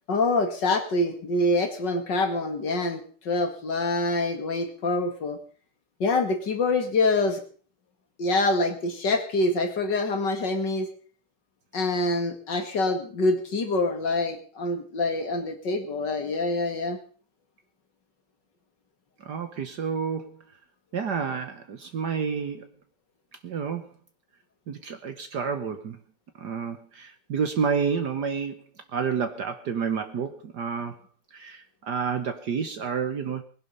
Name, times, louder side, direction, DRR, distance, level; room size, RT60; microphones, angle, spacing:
voice 1, 0.1-5.4 6.0-7.4 8.2-10.9 11.7-17.0, left 2 dB, 55° left, 7 dB, 2.8 m, -25 dB
voice 2, 19.2-20.4 20.9-22.7 23.4-23.9 24.7-26.0 26.4-28.6 28.9-31.0 31.3-33.4, right 6 dB, 55° right, 9 dB, 1.6 m, -29 dB
20.5 x 11.0 x 5.6 m, 0.43 s
omnidirectional pair, 2.3 m